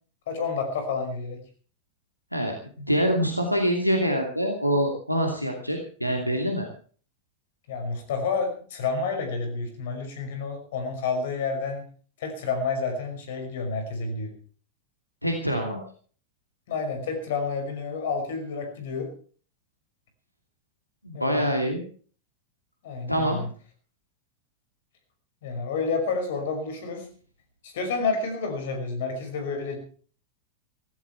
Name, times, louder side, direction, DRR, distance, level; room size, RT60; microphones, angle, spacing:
voice 1, 0.3-1.4 7.7-11.9 12.2-14.4 16.7-19.1 21.1-21.4 22.8-23.5 25.4-27.1 27.6-29.8, left 4 dB, 55° left, 6 dB, 5.5 m, -29 dB
voice 2, 2.3-6.7 15.2-15.8 21.0-21.8 23.1-23.4, equal, 90° left, 2 dB, 2.6 m, -25 dB
16.5 x 15.5 x 4.6 m, 0.42 s
figure-of-eight pair, 90°, 0 cm